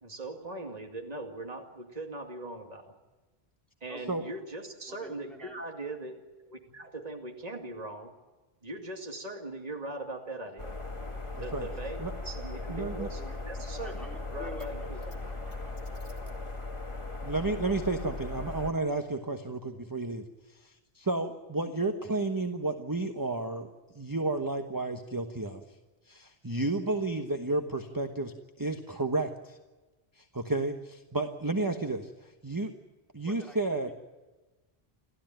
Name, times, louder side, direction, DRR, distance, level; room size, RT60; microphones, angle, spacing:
voice 1, 0.0-2.9 3.8-6.2 6.5-8.1 8.6-10.7 11.4-15.3, right 2 dB, 40° right, 3 dB, 2.4 m, -40 dB
voice 2, 3.9-4.3 4.9-5.6 12.7-13.4 13.8-16.1 33.3-33.9, equal, ahead, 0 dB, 4.0 m, -50 dB
sound 1, 10.6-18.7, left 2 dB, 30° left, 2.2 m, -38 dB
voice 3, 12.7-13.1 17.2-20.2 20.6-23.7 23.9-25.6 26.1-29.6 30.2-32.7 33.1-33.9, right 2 dB, 20° right, 5 dB, 1.2 m, -32 dB
29.5 x 13.0 x 9.1 m, 1.2 s
omnidirectional pair, 1.1 m